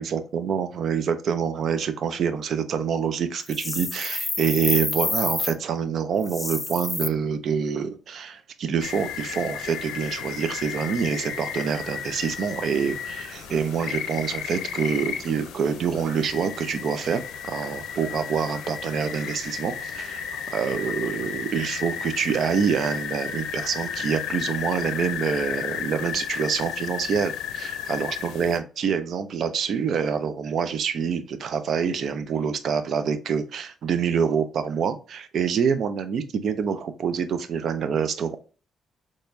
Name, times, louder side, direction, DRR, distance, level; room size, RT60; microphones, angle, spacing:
voice 1, 0.0-38.4, right 7 dB, 60° right, 10 dB, 0.6 m, -26 dB
sound 1, 3.5-5.5 6.2-7.1, left 2 dB, 20° left, 0.4 m, -28 dB
sound 2, 8.8-28.6, left 8 dB, 85° left, 0.5 m, -33 dB
4.4 x 3.0 x 2.6 m, 0.36 s
cardioid pair, 90°, 0 cm